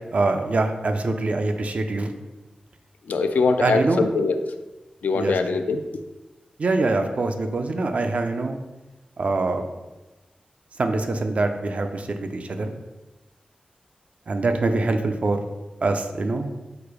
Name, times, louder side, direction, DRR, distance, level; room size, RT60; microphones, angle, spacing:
voice 1, 0.1-2.1 3.6-4.1 5.1-5.3 6.6-8.6 9.2-9.6 10.8-12.7 14.3-15.4 15.8-16.5, right 3 dB, 55° right, 6 dB, 0.4 m, -24 dB
voice 2, 3.1-4.4 5.0-5.8, left 4 dB, 85° left, 8 dB, 0.3 m, -22 dB
4.8 x 2.0 x 4.7 m, 1.1 s
wide cardioid pair, 90°, 3 cm